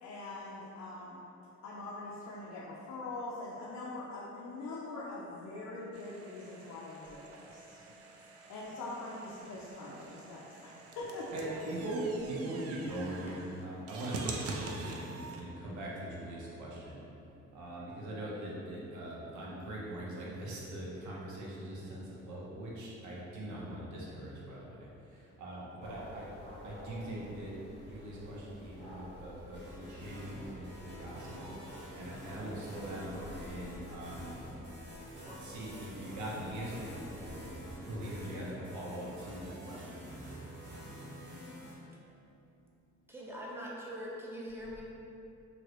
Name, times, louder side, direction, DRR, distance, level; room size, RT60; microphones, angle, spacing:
voice 1, 0.0-1.2 1.6-7.8 8.5-11.3, left 2 dB, 70° left, -6 dB, 0.5 m, -43 dB
sound 1, 5.9-15.4, right 3 dB, 55° right, 0.4 m, -46 dB
voice 2, 11.3-17.0 17.5-26.4 26.6-27.6 27.8-34.4 35.2-40.0, right 1 dB, 75° right, -5 dB, 0.8 m, -41 dB
sound 2, 25.8-38.2, left 1 dB, 20° left, 0.8 m, -51 dB
sound 3, 29.5-41.8, equal, 35° right, 1.0 m, -48 dB
voice 3, 43.1-44.8, equal, 10° right, -5 dB, 0.6 m, -42 dB
3.0 x 2.8 x 2.9 m, 2.9 s
cardioid pair, 90°, 30 cm